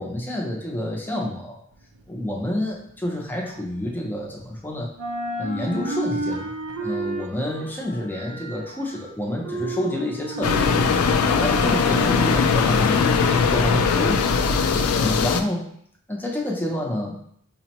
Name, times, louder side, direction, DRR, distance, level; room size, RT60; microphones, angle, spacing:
voice 1, 0.0-1.6 2.1-4.9 5.4-6.5 6.8-11.1 11.4-13.1 13.5-14.3 14.9-15.6 16.1-17.2, left 1 dB, 10° left, -1 dB, 0.5 m, -28 dB
sound 1, 1.7-4.6 4.9-13.0, right 1 dB, 80° right, 0.6 m, -33 dB
sound 2, 10.4-15.4, left 5 dB, 85° left, 0.3 m, -20 dB
5.0 x 2.1 x 2.9 m, 0.66 s
head